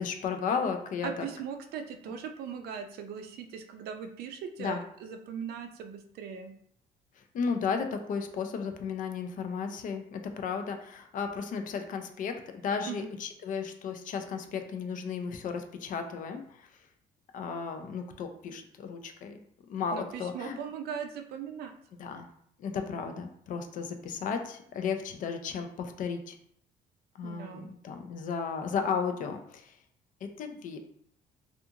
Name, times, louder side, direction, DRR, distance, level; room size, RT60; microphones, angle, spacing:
voice 1, 0.0-1.3 4.6-4.8 7.2-16.7 17.3-19.4 19.7-20.6 22.0-22.3 22.6-26.4 27.2-29.7 30.4-30.8, left 6 dB, 50° left, 6 dB, 0.4 m, -34 dB
voice 2, 1.0-6.5 12.9-13.1 19.9-21.7 27.2-27.7, right 7 dB, 70° right, 6 dB, 0.4 m, -39 dB
2.5 x 2.4 x 2.7 m, 0.68 s
cardioid pair, 110°, 17 cm